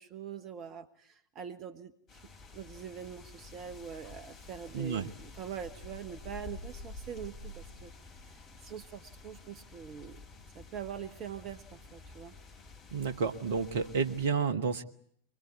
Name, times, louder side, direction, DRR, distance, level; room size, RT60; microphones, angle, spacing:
voice 1, 0.0-1.9 2.5-7.9 8.2-10.2 10.5-12.3, right 8 dB, 35° right, 11 dB, 1.3 m, -44 dB
sound 1, 2.1-14.3, left 3 dB, 25° left, 5.2 m, -50 dB
voice 2, 4.7-5.1 12.9-14.8, right 5 dB, 55° right, 10 dB, 1.4 m, -31 dB
23.5 x 21.0 x 9.7 m, 0.67 s
figure-of-eight pair, 90°, 0 cm